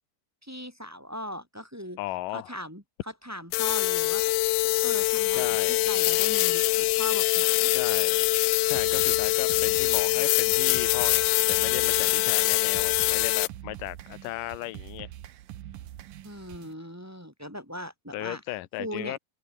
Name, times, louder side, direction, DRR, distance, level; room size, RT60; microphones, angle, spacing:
voice 1, 0.4-2.0 2.3-2.8 3.2-4.2 4.8-7.7 16.2-18.4 18.8-19.2, equal, 5° right, 4.3 m, -39 dB
voice 2, 2.0-2.5 5.2-5.9 7.7-8.3 8.7-15.1 18.1-19.2, left 17 dB, 75° left, 2.1 m, -36 dB
sound 1, 3.5-13.5, left 21 dB, 90° left, 2.2 m, -24 dB
sound 2, 8.7-16.7, right 12 dB, 65° right, 2.6 m, -44 dB
open air
omnidirectional pair, 5.0 m